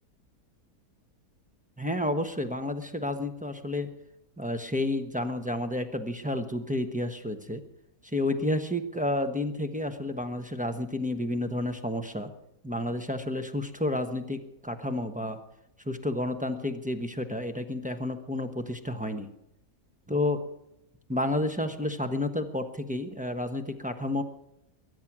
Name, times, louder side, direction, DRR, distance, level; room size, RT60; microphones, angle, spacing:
voice 1, 1.8-3.9 4.4-7.6 8.0-12.3 12.6-15.4 15.8-19.3 20.1-20.4 21.1-24.2, left 1 dB, 5° right, 5 dB, 0.9 m, -30 dB
22.5 x 10.0 x 6.1 m, 0.83 s
omnidirectional pair, 1.7 m